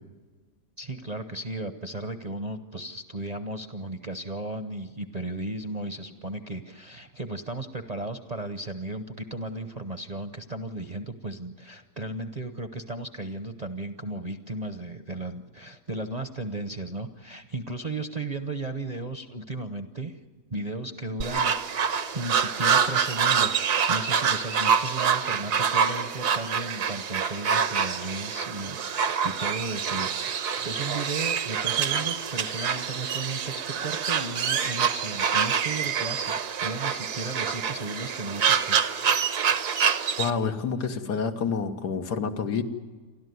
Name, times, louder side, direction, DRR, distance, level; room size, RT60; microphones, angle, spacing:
voice 1, 0.8-20.2 20.5-39.3, right 2 dB, 30° right, 8 dB, 0.8 m, -35 dB
sound 1, 21.2-40.3, right 7 dB, 75° right, 1.6 m, -26 dB
voice 2, 40.2-42.6, left 6 dB, 80° left, 6 dB, 2.0 m, -28 dB
29.0 x 12.0 x 9.5 m, 1.4 s
omnidirectional pair, 1.7 m